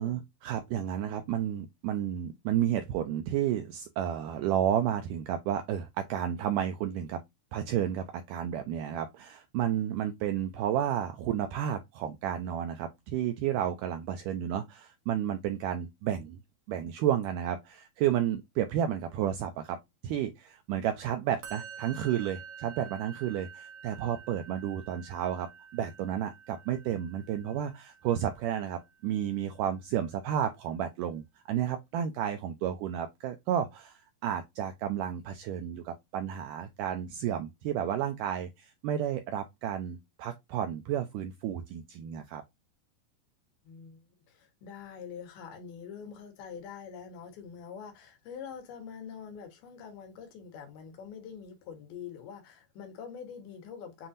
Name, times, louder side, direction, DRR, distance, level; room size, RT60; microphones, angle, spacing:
voice 1, 0.0-7.2 7.5-16.4 16.7-42.4, right 10 dB, 90° right, 1.8 m, -32 dB
Musical instrument, 21.4-28.7, right 6 dB, 70° right, 2.8 m, -49 dB
voice 2, 43.6-44.0 44.3-54.1, left 7 dB, 90° left, 3.3 m, -45 dB
7.3 x 2.6 x 2.5 m
omnidirectional pair, 4.3 m